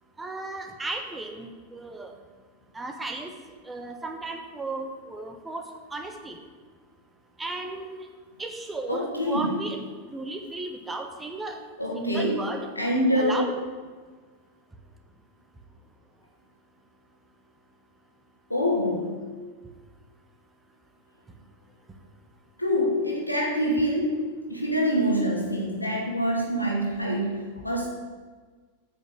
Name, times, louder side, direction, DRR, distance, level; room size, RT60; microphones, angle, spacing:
voice 1, 0.2-2.1 2.7-3.3 3.6-5.6 5.9-6.4 7.4-8.1 8.4-9.8 10.1-11.6 11.9-12.7 13.1-13.6, right 2 dB, 10° right, 4 dB, 1.2 m, -35 dB
voice 2, 8.9-9.5 11.8-12.4 12.8-13.4 18.5-19.1 22.6-24.2 24.5-27.9, equal, 90° left, -2 dB, 2.4 m, -25 dB
8.7 x 6.5 x 8.6 m, 1.5 s
figure-of-eight pair, 90°, 0 cm